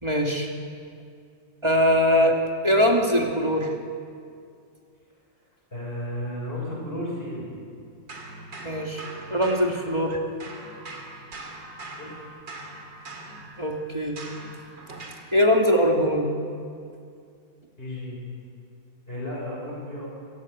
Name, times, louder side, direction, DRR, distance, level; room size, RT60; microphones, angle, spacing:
voice 1, 0.0-0.5 1.6-2.4 2.6-3.7 8.6-9.0 9.3-10.2 13.6-14.2 15.3-16.3, equal, 15° right, 1 dB, 2.2 m, -21 dB
voice 2, 5.7-7.5 12.0-12.3 17.8-18.2 19.1-20.1, left 1 dB, 30° left, -4 dB, 6.9 m, -33 dB
sound 1, 8.1-10.1 10.4-15.3, right 2 dB, 75° right, 3.5 m, -41 dB
26.0 x 17.5 x 8.6 m, 2.3 s
omnidirectional pair, 2.0 m